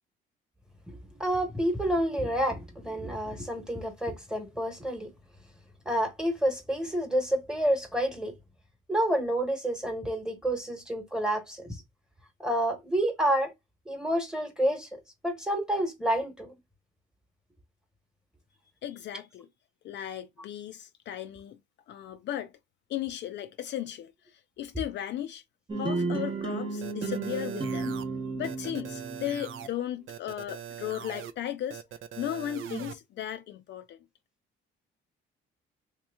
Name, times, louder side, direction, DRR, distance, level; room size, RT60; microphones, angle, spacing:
voice 1, 1.2-5.1 5.8-8.3 8.9-11.6 12.4-13.5 13.9-14.9 15.2-16.5, right 1 dB, 5° right, 1.1 m, -29 dB
voice 2, 18.8-19.5 19.8-21.6 21.9-22.5 22.9-25.4 25.8-28.0 28.4-31.8 32.2-34.0, left 11 dB, 60° left, 0.4 m, -36 dB
sound 1, 25.7-29.7, right 4 dB, 20° right, 0.8 m, -33 dB
sound 2, 26.8-28.0 28.4-29.7 30.1-31.3 31.7-32.9, right 9 dB, 75° right, 0.5 m, -41 dB
3.2 x 2.9 x 3.4 m
cardioid pair, 115°, 21 cm